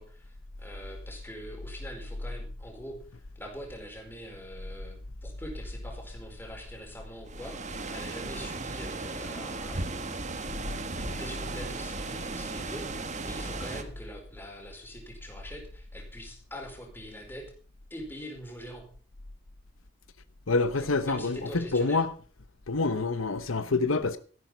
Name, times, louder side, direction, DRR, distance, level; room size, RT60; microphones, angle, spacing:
voice 1, 0.0-3.0 3.4-10.2 10.6-17.5 17.9-18.8 20.8-22.0, equal, 10° left, 4.5 m, -44 dB
sound 1, 7.3-13.8, right 3 dB, 35° right, 1.6 m, -36 dB
voice 2, 20.5-22.1 22.7-24.2, left 3 dB, 85° left, 1.0 m, -27 dB
14.0 x 11.0 x 5.6 m
head